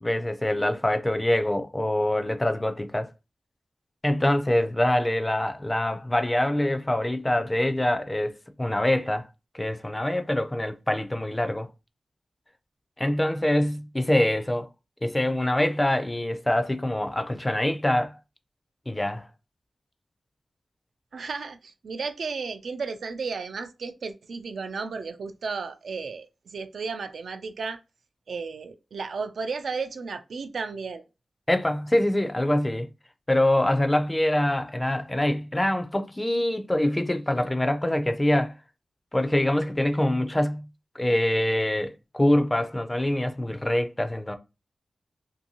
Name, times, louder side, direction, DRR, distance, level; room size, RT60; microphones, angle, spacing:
voice 1, 0.0-3.1 4.0-8.3 8.6-9.2 9.5-11.7 13.0-14.7 15.0-18.2 18.9-19.3 31.5-32.9 33.3-38.5 39.1-40.6 41.0-44.4, left 1 dB, 15° left, 0.3 m, -24 dB
voice 2, 21.1-27.8 28.3-31.0, right 4 dB, 80° right, 0.3 m, -34 dB
2.6 x 2.6 x 2.7 m
wide cardioid pair, 95°, 0 cm